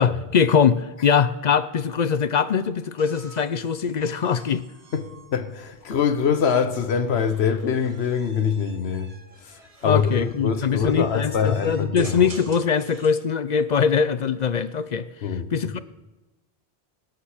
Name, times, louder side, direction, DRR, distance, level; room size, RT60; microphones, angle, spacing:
voice 1, 0.0-4.6 9.8-15.1 15.5-15.8, left 6 dB, 50° left, 0.6 m, -22 dB
sound 1, 3.0-6.2 7.0-13.3 14.7-15.2, right 3 dB, 35° right, 1.1 m, -48 dB
voice 2, 4.9-9.1 9.4-12.2 15.2-15.7, left 6 dB, 85° left, 1.2 m, -24 dB
24.0 x 8.8 x 5.0 m
omnidirectional pair, 1.1 m